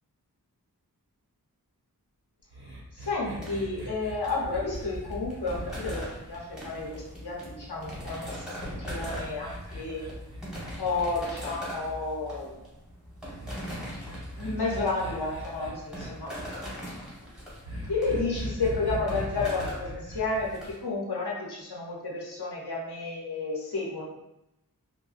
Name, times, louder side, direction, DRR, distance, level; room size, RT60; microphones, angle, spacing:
sound 1, 2.5-6.9 7.9-12.0 13.3-16.1 17.6-20.5, right 1 dB, 80° right, 1.0 m, -40 dB
voice 1, 2.9-8.5 8.8-10.0 10.5-12.6 14.4-16.4 17.9-24.0, left 3 dB, 85° left, -4 dB, 0.8 m, -31 dB
sound 2, 3.4-20.7, equal, ahead, 1.3 m, -40 dB
3.9 x 2.1 x 2.4 m, 0.90 s
wide cardioid pair, 40°, 38 cm